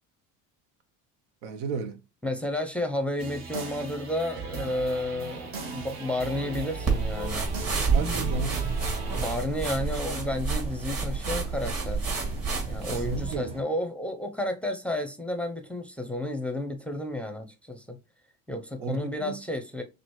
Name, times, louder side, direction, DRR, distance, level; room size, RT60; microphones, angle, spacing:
voice 1, 1.4-2.0 7.9-8.6 12.9-13.6 18.8-19.4, right 4 dB, 80° right, 0.9 m, -33 dB
voice 2, 2.2-7.5 9.1-12.0 12.7-18.0 18.5-19.8, left 1 dB, 5° left, 0.6 m, -31 dB
sound 1, 3.2-9.4, right 4 dB, 55° right, 1.4 m, -38 dB
sound 2, 6.6-13.6, right 2 dB, 15° right, 1.1 m, -42 dB
sound 3, 6.9-13.4, right 4 dB, 35° right, 2.3 m, -29 dB
6.1 x 2.5 x 3.1 m
supercardioid pair, 90°, 42 cm